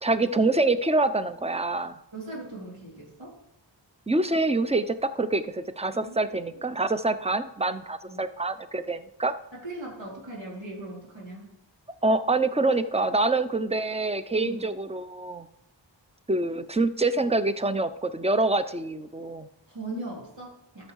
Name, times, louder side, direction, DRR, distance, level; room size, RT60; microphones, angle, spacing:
voice 1, 0.0-2.0 4.1-9.4 12.0-15.5 16.3-19.5, right 2 dB, 15° right, 11 dB, 0.7 m, -26 dB
voice 2, 2.1-3.4 5.9-6.5 8.0-8.2 9.5-11.5 12.7-12.8 14.4-14.6 19.7-20.9, right 2 dB, 80° right, -5 dB, 3.6 m, -39 dB
13.5 x 6.7 x 4.7 m, 0.82 s
wide cardioid pair, 70°, 45 cm